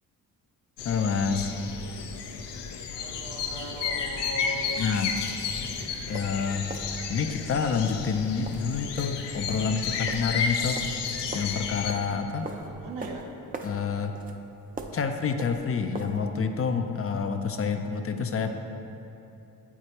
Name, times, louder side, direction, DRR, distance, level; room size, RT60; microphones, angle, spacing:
sound 1, 0.8-11.9, left 5 dB, 75° left, 0.6 m, -32 dB
voice 1, 0.8-1.5 4.8-5.1 6.1-6.7 7.1-10.8 11.3-12.5 13.6-14.2 14.9-18.5, left 6 dB, 35° left, 6 dB, 0.4 m, -28 dB
voice 2, 2.9-4.9 12.4-13.3, right 1 dB, 80° right, 1 dB, 0.8 m, -39 dB
sound 2, 6.1-16.3, right 3 dB, 20° right, 0.5 m, -42 dB
8.2 x 4.7 x 2.9 m, 2.9 s
supercardioid pair, 55°, 42 cm